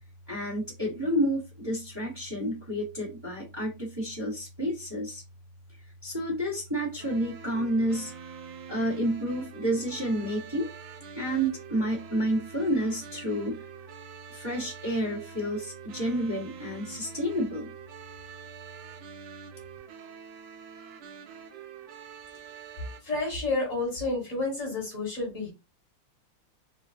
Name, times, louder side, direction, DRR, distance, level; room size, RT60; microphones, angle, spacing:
voice 1, 0.3-5.2 5.7-8.1 8.7-10.7 11.1-13.7 14.3-17.7, right 1 dB, 25° right, 0.5 m, -30 dB
sound 1, 7.0-23.0, right 8 dB, 90° right, 1.6 m, -46 dB
voice 2, 23.0-25.5, left 2 dB, 45° left, 1.5 m, -30 dB
3.7 x 2.2 x 2.5 m
omnidirectional pair, 2.3 m